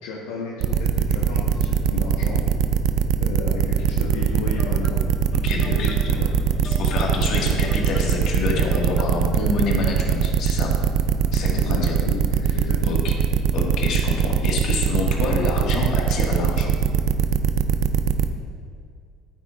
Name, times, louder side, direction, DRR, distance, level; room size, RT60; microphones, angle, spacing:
voice 1, 0.0-2.4 3.2-5.0 5.7-6.3 11.5-12.2 12.5-13.1, left 3 dB, 80° left, -4 dB, 1.3 m, -33 dB
sound 1, 0.6-18.3, right 8 dB, 70° right, 0.5 m, -21 dB
sound 2, 4.1-9.3, left 1 dB, 5° left, 1.4 m, -38 dB
voice 2, 5.3-5.9 6.6-10.7 11.3-12.0 12.4-13.1 13.5-16.8, left 3 dB, 60° left, -1 dB, 1.9 m, -27 dB
12.5 x 9.2 x 2.5 m, 2.2 s
supercardioid pair, 85°, 0 cm